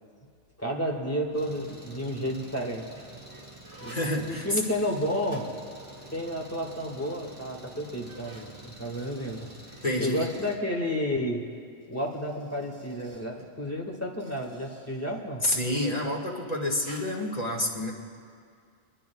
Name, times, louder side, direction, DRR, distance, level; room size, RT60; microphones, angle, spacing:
voice 1, 0.6-3.1 3.3-3.4 3.8-4.0 4.3-5.5 6.1-11.4 11.9-15.4, equal, 15° left, 0 dB, 1.8 m, -31 dB
Engine, 1.3-10.6, right 1 dB, 40° right, 1.9 m, -48 dB
sound 1, 1.7-2.1 2.8-6.2 6.5-6.6 7.3-7.4 7.9-10.4 11.6-15.9 16.8-17.1, right 2 dB, 85° right, 2.5 m, -53 dB
voice 2, 3.9-4.6 9.8-10.3 15.4-17.9, left 1 dB, 35° left, -2 dB, 1.9 m, -28 dB
25.5 x 21.0 x 2.3 m, 2.3 s
omnidirectional pair, 1.2 m